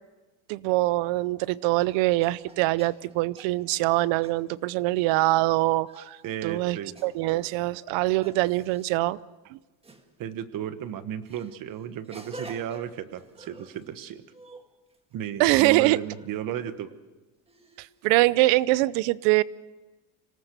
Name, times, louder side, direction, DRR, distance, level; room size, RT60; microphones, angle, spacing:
voice 1, 0.5-6.8 7.0-9.2 9.5-9.6 15.4-16.0 17.8-19.4, right 19 dB, 85° right, 0.7 m, -23 dB
sound 1, 1.0-1.1 1.8-5.2 5.9-6.2 7.0-7.6 8.2-8.9 9.8-10.1 11.3-13.9 14.2-15.1 15.8-16.3 17.5-17.9 18.5-18.7, right 2 dB, 15° right, 1.6 m, -48 dB
voice 2, 6.2-6.9 10.2-14.2 15.1-16.9, right 10 dB, 50° right, 1.4 m, -34 dB
25.5 x 18.5 x 6.8 m
cardioid pair, 155°, 44 cm